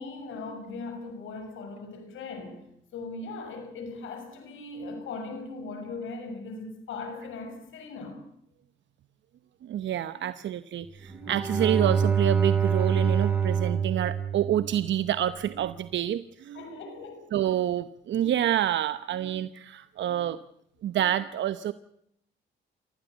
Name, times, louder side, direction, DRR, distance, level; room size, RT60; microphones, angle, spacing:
voice 1, 0.0-2.7 2.9-8.2 16.5-17.3, left 3 dB, 80° left, 6.6 m, -39 dB
voice 2, 9.6-16.6 17.3-20.4 20.8-21.7, right 11 dB, 70° right, 0.9 m, -28 dB
Bowed string instrument, 11.1-15.1, right 6 dB, 10° right, 4.1 m, -26 dB
24.5 x 16.5 x 8.2 m
cardioid pair, 90°, 20 cm